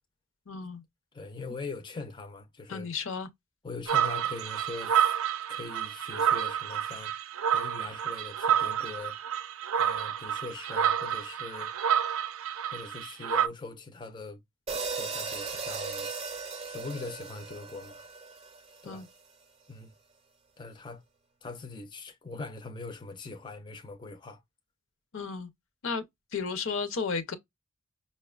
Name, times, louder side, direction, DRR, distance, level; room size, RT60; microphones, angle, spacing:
voice 1, 0.5-0.8 2.7-3.3 18.8-19.1 25.1-25.5 25.8-26.0 26.3-27.3, left 5 dB, 65° left, 0.6 m, -33 dB
voice 2, 1.1-2.9 3.6-5.1 5.5-7.1 7.5-9.2 9.8-11.7 12.7-14.4 15.0-16.1 16.7-18.0 18.8-19.1 19.7-19.9 20.6-21.0 21.4-24.4, left 3 dB, 20° left, 0.4 m, -41 dB
sound 1, 3.9-13.5, right 9 dB, 80° right, 0.5 m, -29 dB
sound 2, 14.7-19.0, right 4 dB, 30° right, 0.6 m, -37 dB
5.4 x 2.1 x 2.3 m
head